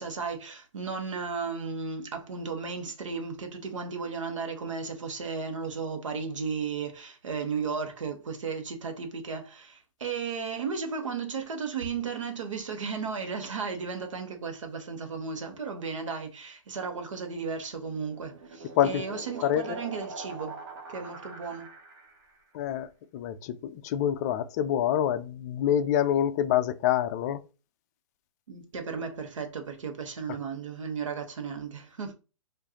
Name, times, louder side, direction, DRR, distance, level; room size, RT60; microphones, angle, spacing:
voice 1, 0.0-20.5 20.9-21.7 28.5-32.1, right 5 dB, 70° right, 1.1 m, -35 dB
sound 1, 17.6-22.4, right 3 dB, 45° right, 1.0 m, -43 dB
voice 2, 18.8-19.8 22.5-22.9 23.1-27.4, left 10 dB, 30° left, 0.4 m, -27 dB
4.6 x 2.6 x 2.9 m
figure-of-eight pair, 125°, 17 cm